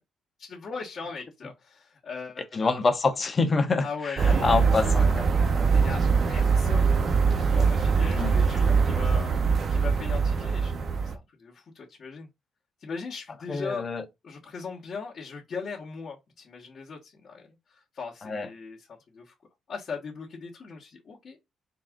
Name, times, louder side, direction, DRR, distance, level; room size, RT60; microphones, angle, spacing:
voice 1, 0.4-2.8 3.8-5.1 5.7-6.0 6.3-7.0 7.3-12.3 12.8-13.8 14.2-18.9 19.1-19.3 19.7-21.4, left 5 dB, 50° left, 1.3 m, -39 dB
voice 2, 2.5-5.3 8.1-8.3 13.5-14.0 18.2-18.5, left 4 dB, 35° left, 0.9 m, -26 dB
sound 1, 4.2-11.2, right 5 dB, 50° right, 0.7 m, -23 dB
4.1 x 2.4 x 3.6 m
cardioid pair, 90°, 0 cm